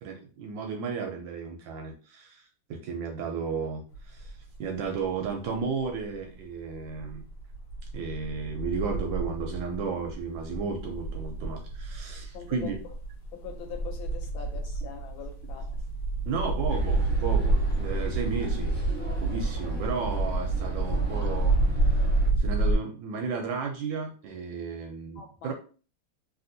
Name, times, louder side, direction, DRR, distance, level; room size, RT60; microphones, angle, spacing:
voice 1, 0.0-2.4 2.7-4.3 4.6-7.2 7.9-12.8 16.3-18.7 19.2-21.6 22.4-25.5, right 5 dB, 75° right, 1.1 m, -33 dB
sound 1, 3.9-4.6 4.9-6.3 6.7-22.8, right 2 dB, 55° left, 1.4 m, -29 dB
voice 2, 12.3-12.7 13.3-15.8 25.2-25.5, left 8 dB, 75° left, 1.2 m, -42 dB
sound 2, 16.7-22.3, right 3 dB, 5° left, 1.1 m, -33 dB
3.3 x 2.6 x 2.6 m
omnidirectional pair, 2.4 m